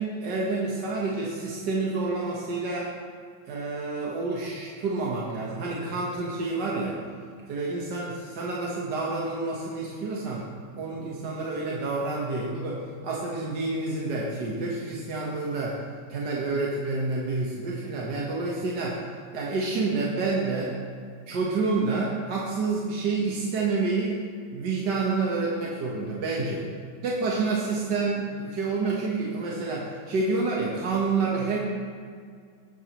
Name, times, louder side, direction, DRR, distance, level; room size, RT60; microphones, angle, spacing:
voice 1, 0.0-2.9 3.5-7.0 7.5-10.5 10.8-12.8 13.0-15.8 16.1-19.0 19.3-20.7 21.3-24.2 24.5-26.6 27.0-31.6, right 3 dB, 75° right, -4 dB, 1.9 m, -28 dB
18.0 x 8.2 x 3.0 m, 2.1 s
omnidirectional pair, 1.9 m